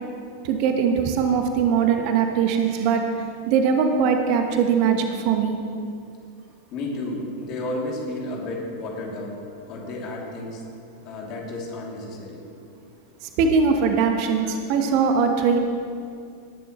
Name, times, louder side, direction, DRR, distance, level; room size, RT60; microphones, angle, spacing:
voice 1, 0.4-3.0 3.5-5.6 13.4-15.6, right 6 dB, 45° right, 5 dB, 1.1 m, -21 dB
voice 2, 6.7-10.6 11.0-12.4 14.4-15.0, left 2 dB, 40° left, -2 dB, 2.7 m, -32 dB
19.0 x 10.5 x 3.1 m, 2.4 s
figure-of-eight pair, 90°, 0 cm